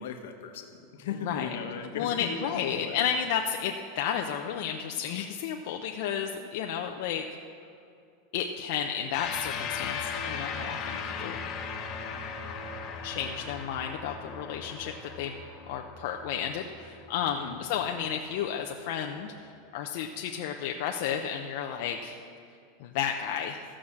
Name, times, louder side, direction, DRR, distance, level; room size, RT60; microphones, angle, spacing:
voice 1, 0.0-3.0 6.4-6.5 17.3-17.6, left 6 dB, 80° left, 5 dB, 1.2 m, -37 dB
voice 2, 1.9-7.2 8.3-11.4 13.0-15.4 15.7-22.2 22.8-23.6, left 8 dB, 65° left, 3 dB, 0.6 m, -32 dB
sound 1, 9.1-17.8, left 5 dB, 35° left, 1.2 m, -37 dB
14.5 x 5.0 x 7.2 m, 2.5 s
supercardioid pair, 140°, 0 cm